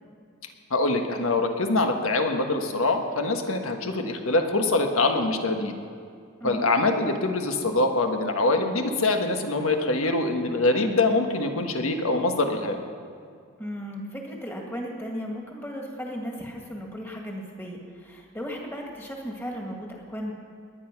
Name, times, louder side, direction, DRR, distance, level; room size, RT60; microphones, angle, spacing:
voice 1, 0.7-5.7 6.4-12.8, left 2 dB, 80° left, 4 dB, 1.5 m, -24 dB
voice 2, 6.4-6.7 13.6-20.3, equal, 10° left, 0 dB, 1.9 m, -35 dB
20.5 x 10.0 x 6.0 m, 2.3 s
head